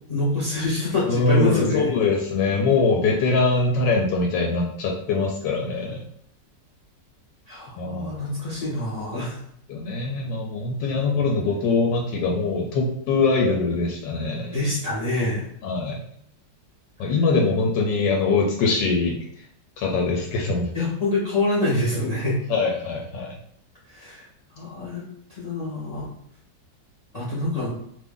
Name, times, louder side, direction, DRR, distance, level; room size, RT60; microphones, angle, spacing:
voice 1, 0.1-1.9 7.5-9.4 14.5-15.5 17.0-17.1 20.7-22.4 23.9-24.3 24.5-25.0 25.3-26.1 27.1-27.7, left 2 dB, 40° left, -6 dB, 0.5 m, -26 dB
voice 2, 1.1-6.0 7.8-8.1 9.7-14.6 15.6-16.0 17.0-19.2 19.8-20.7 22.5-23.4, left 3 dB, 80° left, 0 dB, 1.3 m, -23 dB
2.8 x 2.6 x 3.6 m, 0.67 s
omnidirectional pair, 2.0 m